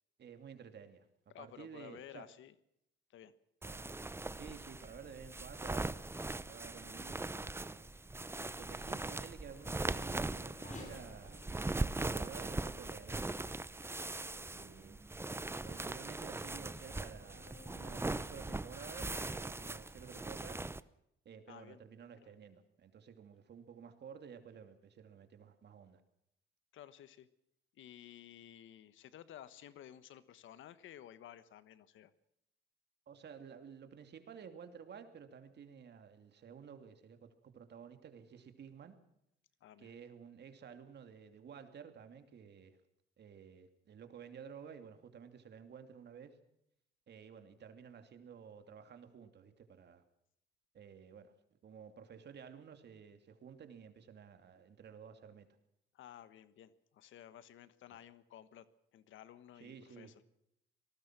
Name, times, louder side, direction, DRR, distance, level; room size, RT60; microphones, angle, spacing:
voice 1, 0.2-1.1 1.4-2.2 3.6-3.9 4.3-7.9 8.6-11.4 12.0-13.4 13.8-14.0 14.3-15.0 15.6-20.6 21.2-26.0 33.1-39.0 39.8-42.8 43.2-46.4 47.1-50.0 50.7-51.3 51.6-55.5 59.6-60.1, right 7 dB, 60° right, 7 dB, 2.8 m, -53 dB
voice 2, 1.3-2.5 3.1-3.3 8.4-8.8 21.5-21.8 26.7-27.3 27.7-32.1 39.6-39.9 55.9-58.7 58.9-60.1, left 11 dB, 80° left, 14 dB, 1.4 m, -54 dB
sound 1, 3.6-20.8, right 2 dB, 10° right, 0.8 m, -40 dB
Race car auto racing / Accelerating revving vroom, 7.7-14.4 15.0-15.1 15.7-20.5, left 3 dB, 40° left, 7.9 m, -61 dB
25.5 x 19.0 x 6.1 m, 0.77 s
cardioid pair, 90°, 20 cm